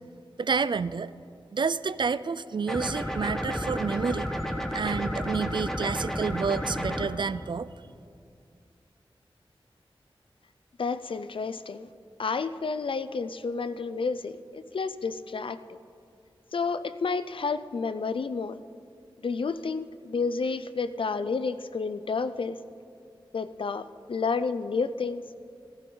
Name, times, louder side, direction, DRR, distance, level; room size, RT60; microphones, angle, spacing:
voice 1, 0.4-1.1 1.5-4.3 4.7-7.7, right 5 dB, 55° right, 16 dB, 0.4 m, -29 dB
sound 1, 2.7-7.1, equal, 5° left, 1.2 m, -31 dB
voice 2, 10.8-11.9 12.2-15.8 16.5-18.6 19.2-22.6 23.3-25.2, left 4 dB, 70° left, 13 dB, 0.5 m, -30 dB
15.5 x 15.0 x 3.9 m, 2.4 s
wide cardioid pair, 75°, 9 cm